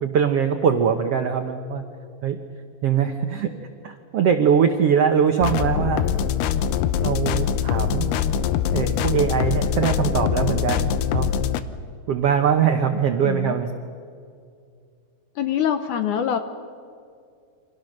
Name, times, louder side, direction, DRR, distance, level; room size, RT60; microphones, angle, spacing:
voice 1, 0.0-1.8 2.2-2.4 2.8-3.5 3.8-6.1 7.0-8.1 8.7-11.3 12.1-13.7, right 7 dB, 80° right, 5 dB, 1.3 m, -22 dB
sound 1, 5.4-11.6, left 9 dB, 85° left, 2.9 m, -23 dB
voice 2, 13.2-13.6 15.4-16.4, left 9 dB, 70° left, 8 dB, 2.0 m, -24 dB
29.0 x 25.5 x 6.6 m, 2.4 s
omnidirectional pair, 4.4 m